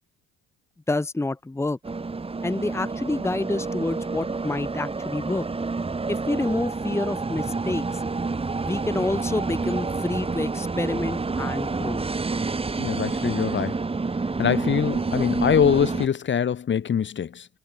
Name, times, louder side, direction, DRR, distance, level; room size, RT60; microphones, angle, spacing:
voice 1, 0.9-1.8 2.4-5.5 6.1-7.8 8.6-12.0, left 2 dB, 10° left, 1.4 m, -28 dB
sound 1, 1.8-16.1, right 4 dB, 20° right, 2.4 m, -28 dB
voice 2, 12.8-13.8 14.4-17.5, left 8 dB, 40° left, 1.8 m, -23 dB
cardioid pair, 100°, 30 cm